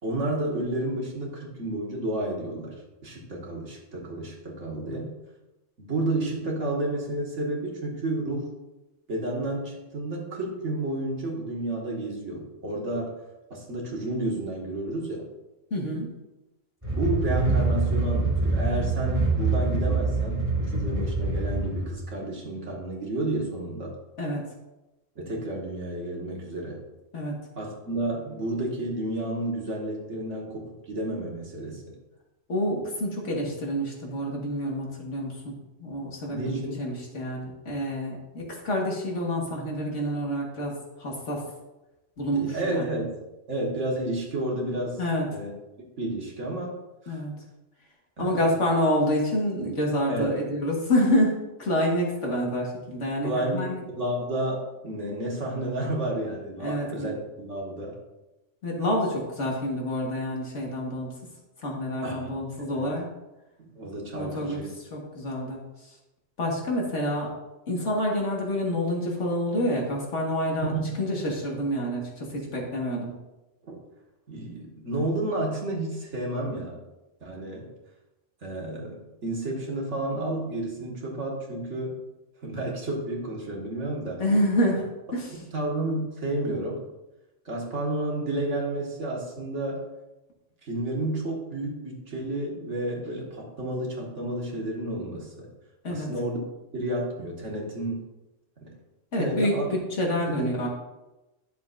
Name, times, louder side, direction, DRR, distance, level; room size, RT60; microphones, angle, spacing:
voice 1, 0.0-2.7 3.0-5.1 5.8-8.5 9.1-13.1 13.5-15.3 16.9-23.9 25.2-26.8 27.6-32.0 36.3-36.8 42.3-43.2 43.5-45.0 45.3-45.5 46.0-46.7 47.1-47.2 48.2-48.4 50.1-50.3 53.2-53.6 53.9-58.0 62.0-62.9 63.6-64.7 70.6-70.9 73.7-73.8 74.3-76.8 77.2-77.7 78.4-82.0 82.4-84.2 85.3-86.8 87.5-89.8 90.6-95.5 95.9-96.4 96.7-98.0 98.6-98.7 99.2-99.7 100.1-100.5, right 1 dB, 70° right, -2 dB, 2.0 m, -31 dB
voice 2, 15.7-16.1 24.2-24.4 27.1-27.3 32.5-35.5 35.8-40.7 41.0-41.4 42.2-42.9 45.0-45.3 47.1-47.3 48.2-53.8 56.6-57.1 58.6-61.1 61.6-63.1 64.1-64.6 64.9-65.9 66.4-67.3 67.7-70.7 71.0-73.1 84.2-84.8 85.1-85.4 95.8-96.1 99.1-100.7, equal, 70° left, -1 dB, 2.0 m, -27 dB
sound 1, 16.8-21.8, right 3 dB, 25° right, 3.3 m, -25 dB
10.5 x 6.8 x 2.6 m, 1.0 s
omnidirectional pair, 1.3 m